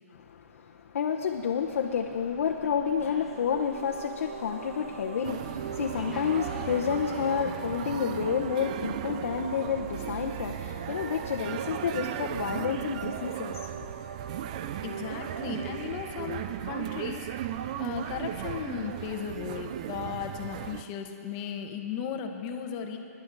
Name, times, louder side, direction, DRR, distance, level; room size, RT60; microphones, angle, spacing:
voice 1, 0.1-13.7, left 7 dB, 55° left, 1 dB, 0.9 m, -30 dB
Slam, 1.6-7.6, left 1 dB, ahead, 1.9 m, -49 dB
sound 1, 3.1-17.8, right 6 dB, 55° right, 0.9 m, -43 dB
sound 2, 5.2-20.8, right 11 dB, 25° right, 0.4 m, -37 dB
voice 2, 14.8-17.5 17.8-23.0, left 7 dB, 25° left, 4 dB, 1.0 m, -36 dB
26.0 x 11.5 x 4.0 m, 2.7 s
hypercardioid pair, 170°, 9 cm